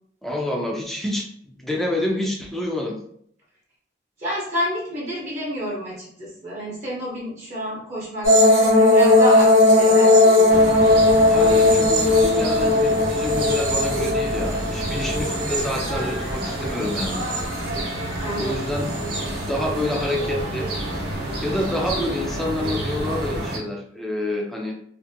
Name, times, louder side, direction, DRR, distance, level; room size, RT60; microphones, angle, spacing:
voice 1, 0.2-1.3 1.6-3.0 11.3-17.2 18.4-19.0 19.5-20.7 21.4-24.7, left 1 dB, ahead, 0 dB, 0.4 m, -27 dB
voice 2, 4.2-8.3 8.6-10.5 18.2-18.6, left 1 dB, 35° right, -6 dB, 0.7 m, -29 dB
sound 1, 8.2-16.4 16.8-17.7 18.9-19.2, left 2 dB, 90° right, 0.8 m, -17 dB
sound 2, 10.5-23.6, right 1 dB, 55° right, 0.9 m, -29 dB
2.5 x 2.5 x 2.6 m, 0.67 s
head